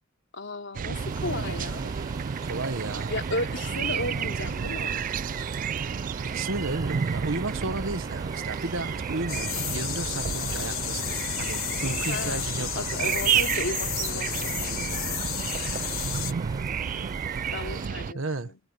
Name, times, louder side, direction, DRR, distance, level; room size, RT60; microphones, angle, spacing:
voice 1, 0.3-1.9 3.1-5.2 12.0-12.5 12.7-15.2 17.5-18.6, left 2 dB, 60° left, 3.5 m, -35 dB
sound 1, 0.7-18.1, right 7 dB, 40° right, 0.3 m, -31 dB
sound 2, 0.9-17.9, right 2 dB, 20° right, 7.5 m, -43 dB
voice 2, 2.4-3.1 6.2-13.4 17.6-17.7 18.1-18.5, right 2 dB, 70° right, 1.4 m, -33 dB
sound 3, 9.3-16.3, left 14 dB, 85° left, 1.3 m, -32 dB
head